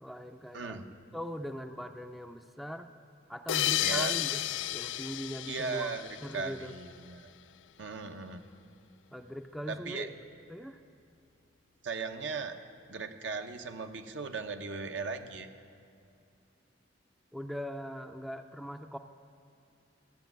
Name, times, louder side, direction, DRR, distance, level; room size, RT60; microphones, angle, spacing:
voice 1, 0.0-2.9 3.3-5.9 6.2-6.8 9.1-10.1 10.5-10.8 17.3-19.0, equal, ahead, 7 dB, 0.3 m, -41 dB
voice 2, 0.5-0.8 3.8-4.1 5.5-6.0 6.3-7.3 7.8-8.5 9.7-10.1 11.8-12.6 12.9-15.5, right 4 dB, 75° right, 7 dB, 0.8 m, -37 dB
sound 1, 3.5-6.8, left 13 dB, 90° left, 0.4 m, -32 dB
13.0 x 7.3 x 9.1 m, 2.5 s
head